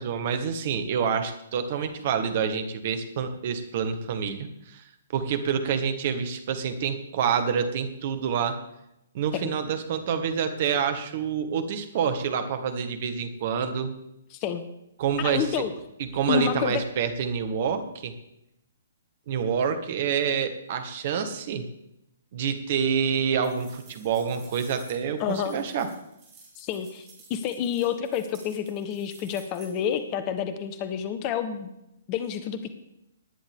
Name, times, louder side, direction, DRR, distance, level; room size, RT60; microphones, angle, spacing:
voice 1, 0.0-4.8 5.1-8.6 9.1-13.9 15.0-15.5 16.0-18.1 19.3-21.7 22.3-25.9, right 7 dB, 45° right, 8 dB, 1.7 m, -27 dB
voice 2, 14.3-14.6 15.2-15.7 16.3-16.8 25.2-25.6 26.6-31.7 32.1-32.7, left 9 dB, 30° left, 11 dB, 1.1 m, -29 dB
sound 1, 23.4-30.0, right 4 dB, 30° right, 5.8 m, -53 dB
18.5 x 10.0 x 3.6 m, 0.83 s
figure-of-eight pair, 125°, 0 cm